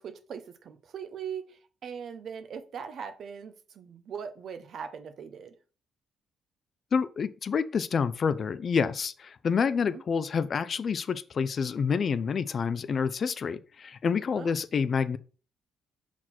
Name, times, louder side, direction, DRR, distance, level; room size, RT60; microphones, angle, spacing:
voice 1, 0.0-5.5 9.8-10.0 14.3-14.6, right 7 dB, 60° right, 0.8 m, -40 dB
voice 2, 6.9-15.2, left 6 dB, 50° left, 0.4 m, -28 dB
6.1 x 4.3 x 4.3 m
cardioid pair, 90°, 0 cm